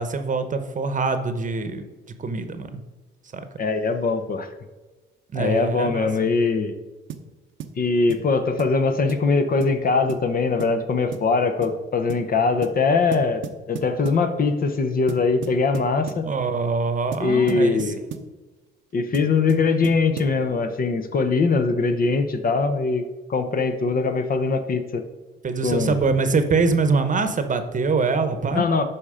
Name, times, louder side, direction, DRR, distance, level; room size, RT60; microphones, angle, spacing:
voice 1, 0.0-1.8 2.2-2.8 3.3-3.4 5.3-6.1 16.3-18.3 25.4-28.7, right 4 dB, 40° right, 9 dB, 1.0 m, -24 dB
voice 2, 3.6-4.5 5.3-6.7 7.8-13.4 13.7-16.3 17.2-18.0 18.9-23.0 23.3-25.0 25.6-26.0 28.5-28.8, left 4 dB, 45° left, 7 dB, 0.9 m, -22 dB
sound 1, 7.1-7.3 7.6-7.8 8.1-8.3 8.6-8.8 9.1-9.3 9.6-9.8 10.1-10.3 10.6-10.8 11.1-11.3 11.6-11.8 12.1-12.3 12.6-12.8 13.1-14.3 15.1-16.3 17.1-18.3 19.1-20.4, right 8 dB, 75° right, 0.8 m, -35 dB
11.5 x 4.4 x 5.0 m, 1.2 s
cardioid pair, 90°, 20 cm